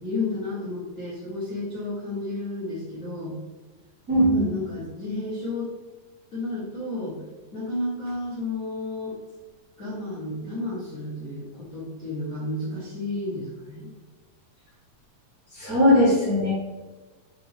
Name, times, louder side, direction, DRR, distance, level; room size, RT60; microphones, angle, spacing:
voice 1, 0.0-3.4 4.3-5.7 6.3-7.2 7.5-9.2 9.8-13.9, left 2 dB, 65° left, -8 dB, 0.8 m, -32 dB
voice 2, 4.1-4.6 15.5-16.5, left 1 dB, 40° right, -10 dB, 1.3 m, -19 dB
6.6 x 4.1 x 3.7 m, 1.2 s
omnidirectional pair, 4.9 m